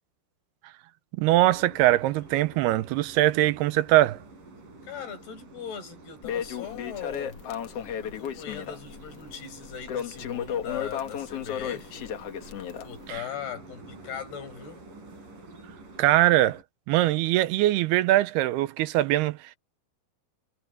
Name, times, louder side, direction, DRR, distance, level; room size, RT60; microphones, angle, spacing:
voice 1, 1.2-4.2 13.1-13.2 16.0-16.6 16.9-19.6, right 15 dB, 90° right, 2.8 m, -22 dB
sound 1, 1.3-16.6, right 2 dB, 55° right, 7.8 m, -48 dB
voice 2, 4.8-7.4 8.0-12.1 12.8-14.8, left 8 dB, 85° left, 7.2 m, -39 dB
Crackle, 6.2-13.2, left 9 dB, 60° left, 1.7 m, -34 dB
omnidirectional pair, 4.5 m